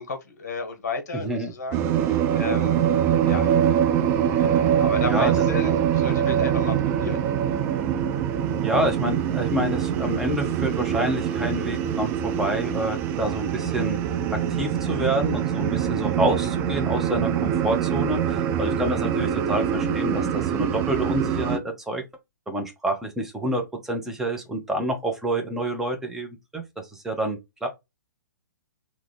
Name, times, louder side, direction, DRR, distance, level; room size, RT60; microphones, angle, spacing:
voice 1, 0.0-1.8 2.0-2.8 3.2-3.5 4.3-7.2, left 3 dB, 50° left, 1.1 m, -33 dB
voice 2, 1.1-1.5 5.1-5.3 8.6-14.0 14.3-22.0 22.5-27.7, right 1 dB, 5° right, 0.8 m, -28 dB
sound 1, 1.7-21.6, right 9 dB, 20° right, 0.4 m, -24 dB
3.6 x 2.4 x 3.1 m
figure-of-eight pair, 120°, 10 cm